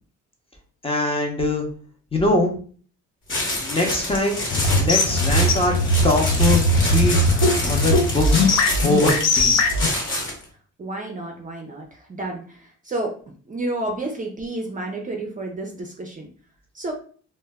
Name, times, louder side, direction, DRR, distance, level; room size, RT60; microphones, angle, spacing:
voice 1, 0.8-1.6 2.1-2.5 3.6-4.4 4.8-5.7 6.0-7.2 7.6-8.5 8.8-9.6, left 2 dB, 20° left, 0 dB, 0.7 m, -22 dB
sound 1, 3.3-10.4, left 1 dB, 40° left, 1.1 m, -27 dB
sound 2, 4.5-9.9, left 1 dB, 60° left, 0.5 m, -19 dB
voice 2, 10.8-13.1 13.5-16.3 16.7-16.9, right 2 dB, 25° right, 1 dB, 0.5 m, -30 dB
2.1 x 2.0 x 3.4 m, 0.43 s
cardioid pair, 90°, 30 cm